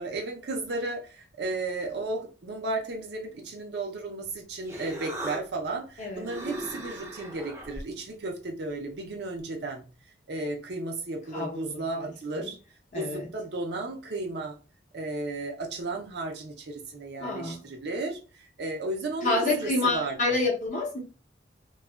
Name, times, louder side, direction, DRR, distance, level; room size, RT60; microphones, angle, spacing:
voice 1, 0.0-9.8 10.3-12.6 12.9-14.5 14.9-20.2, right 2 dB, 65° right, 0.5 m, -34 dB
Human voice, 4.2-9.4, right 1 dB, 15° right, 0.5 m, -41 dB
voice 2, 6.0-6.3 11.3-12.5 12.9-13.3 17.2-17.6 19.2-21.0, left 2 dB, 45° left, 0.7 m, -29 dB
2.7 x 2.3 x 2.2 m
head